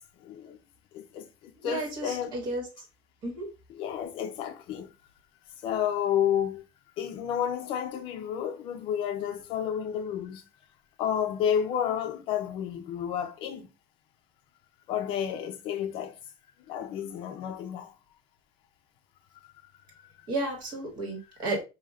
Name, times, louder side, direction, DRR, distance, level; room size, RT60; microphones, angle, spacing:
voice 1, 0.2-0.6 0.9-2.3 3.8-4.9 5.6-6.6 7.0-10.4 11.0-13.7 14.9-16.1 16.7-17.9 20.0-20.1, left 9 dB, 50° left, 0.5 m, -31 dB
voice 2, 1.6-2.7 3.2-3.5 20.3-21.6, right 2 dB, 40° right, 1.7 m, -32 dB
5.4 x 2.8 x 2.4 m
cardioid pair, 170°, 12 cm